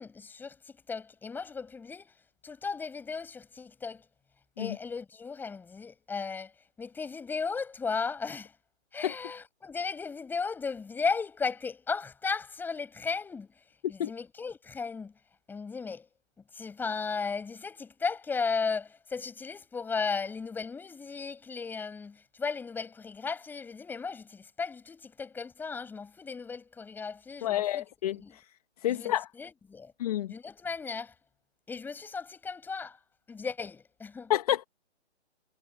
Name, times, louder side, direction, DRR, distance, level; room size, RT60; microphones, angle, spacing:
voice 1, 0.0-2.2 2.4-4.1 4.6-6.5 6.8-8.5 8.9-13.5 13.9-15.1 15.5-16.1 16.5-27.8 28.1-28.4 28.9-29.9 30.3-31.1 31.7-33.0 33.3-34.3, left 5 dB, 5° left, 6.8 m, -35 dB
voice 2, 27.4-28.4 28.8-29.3 30.0-30.3 34.3-34.6, left 12 dB, 30° left, 1.9 m, -29 dB
hypercardioid pair, 160°, 35 cm